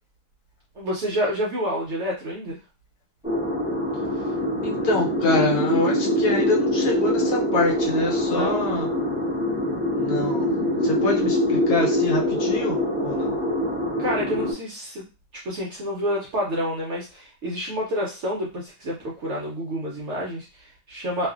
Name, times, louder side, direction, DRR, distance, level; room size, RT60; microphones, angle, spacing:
voice 1, 0.8-2.6 8.3-8.7 14.0-15.1 15.3-21.3, equal, 65° right, -2 dB, 0.7 m, -28 dB
sound 1, 3.2-14.5, left 1 dB, 5° right, 0.5 m, -24 dB
voice 2, 4.6-8.9 10.0-10.5 10.8-13.4, left 2 dB, 70° left, 0 dB, 1.1 m, -25 dB
2.5 x 2.4 x 2.3 m, 0.30 s
omnidirectional pair, 1.7 m